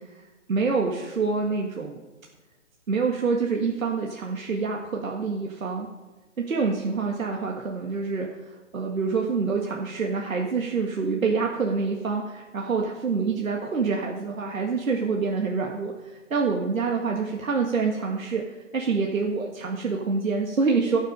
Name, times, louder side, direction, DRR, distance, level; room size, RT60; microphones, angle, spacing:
voice 1, 0.5-2.0 2.9-5.9 6.4-8.4 8.7-21.0, right 4 dB, 80° right, 0 dB, 1.9 m, -26 dB
17.0 x 6.4 x 5.5 m, 1.2 s
hypercardioid pair, 175°, 39 cm